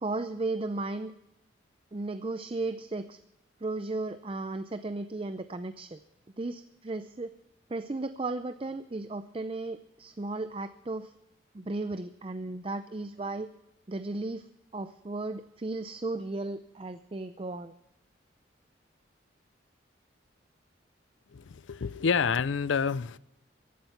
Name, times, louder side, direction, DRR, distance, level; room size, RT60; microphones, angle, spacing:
voice 1, 0.0-1.1 1.9-3.2 3.6-6.0 6.4-7.3 7.7-11.1 11.5-13.5 13.9-14.5 14.7-17.7, right 2 dB, 30° right, 0.5 m, -35 dB
voice 2, 21.3-23.2, left 6 dB, 80° left, 0.5 m, -28 dB
15.5 x 11.5 x 5.8 m
head